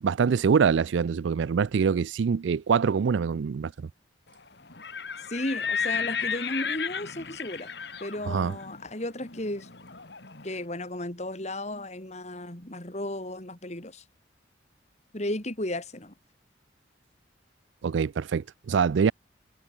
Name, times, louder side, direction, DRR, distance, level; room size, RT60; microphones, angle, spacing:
voice 1, 0.0-3.9 8.3-8.5 17.8-19.1, right 6 dB, 75° right, 0.4 m, -24 dB
Livestock farm animals working animals, 4.7-10.5, left 6 dB, 60° left, 2.3 m, -34 dB
voice 2, 5.3-7.7 8.0-9.7 10.4-14.0 15.1-16.1, left 1 dB, 35° left, 3.3 m, -34 dB
head